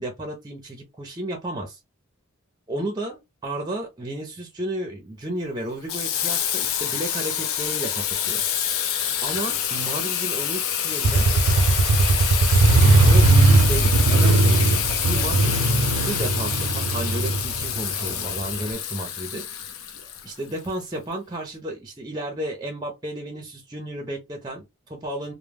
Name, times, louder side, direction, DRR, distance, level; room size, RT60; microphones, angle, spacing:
voice 1, 0.0-1.8 2.7-8.4 9.2-11.3 12.4-14.7 15.0-15.5 15.9-19.7 20.2-25.3, right 1 dB, 20° right, 0.5 m, -33 dB
Water tap faucet / Sink (filling or washing), 5.9-20.7, left 9 dB, 65° left, 0.5 m, -27 dB
Motorcycle, 11.0-18.7, right 2 dB, 90° right, 0.5 m, -18 dB
2.1 x 2.1 x 3.3 m
head